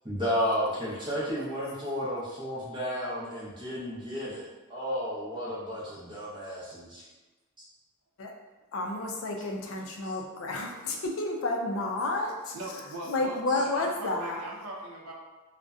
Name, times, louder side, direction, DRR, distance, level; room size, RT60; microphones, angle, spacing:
voice 1, 0.0-7.0 10.0-10.1 13.5-13.6, equal, 20° right, -8 dB, 0.7 m, -32 dB
voice 2, 8.7-12.5 13.1-14.4, left 2 dB, 70° left, 1 dB, 0.4 m, -31 dB
voice 3, 12.5-15.1, right 1 dB, 85° right, -2 dB, 0.5 m, -40 dB
2.6 x 2.1 x 2.3 m, 1.2 s
head